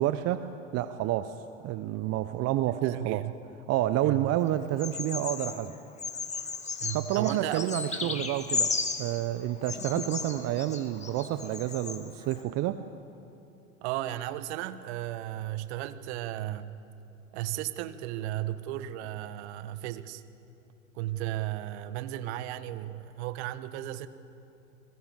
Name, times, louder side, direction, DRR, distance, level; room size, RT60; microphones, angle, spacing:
voice 1, 0.0-1.3 1.6-3.2 3.7-5.8 6.9-12.8, right 13 dB, 40° right, 12 dB, 0.9 m, -29 dB
voice 2, 2.8-3.3 4.0-4.3 6.8-8.2 13.8-16.8 17.3-20.2 20.9-24.1, right 14 dB, 55° right, 12 dB, 1.4 m, -35 dB
Bird vocalization bird call bird song, 4.8-5.6 6.0-9.2 9.6-12.0 12.3-12.4, left 4 dB, 15° left, 2.5 m, -34 dB
30.0 x 21.0 x 7.6 m, 2.8 s
hypercardioid pair, 90°, 40 cm